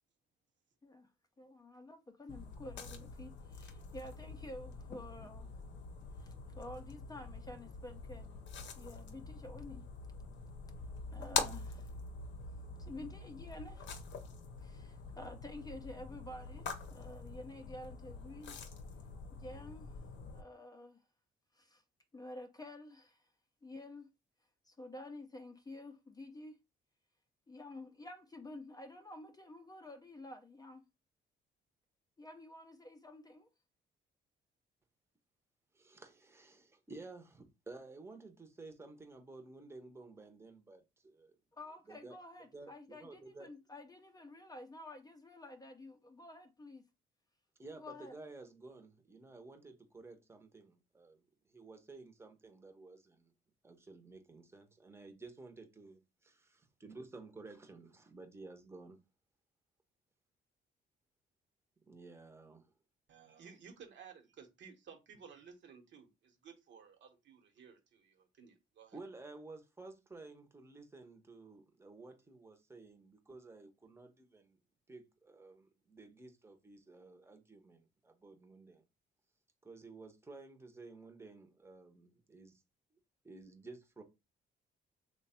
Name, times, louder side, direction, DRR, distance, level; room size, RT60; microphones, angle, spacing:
voice 1, 1.4-5.5 6.2-9.9 11.1-11.9 12.8-14.1 14.6-18.6 19.3-20.0 20.3-21.0 21.5-21.8 22.1-23.3 23.6-24.1 24.6-26.6 27.5-30.9 32.2-33.5 41.5-46.8 47.7-48.2, left 1 dB, 20° left, 0.5 m, -50 dB
sound 1, 2.3-20.4, left 5 dB, 65° left, 0.6 m, -45 dB
voice 2, 35.7-41.4 41.9-42.2 42.5-43.5 47.6-53.3 53.6-59.0 61.9-62.7 63.3-63.4 68.9-74.6 74.9-78.8 79.6-82.6 83.2-84.0, right 3 dB, 15° right, 0.7 m, -53 dB
voice 3, 63.1-69.0, right 6 dB, 65° right, 1.0 m, -56 dB
3.1 x 2.2 x 4.2 m
cardioid pair, 90°, 20 cm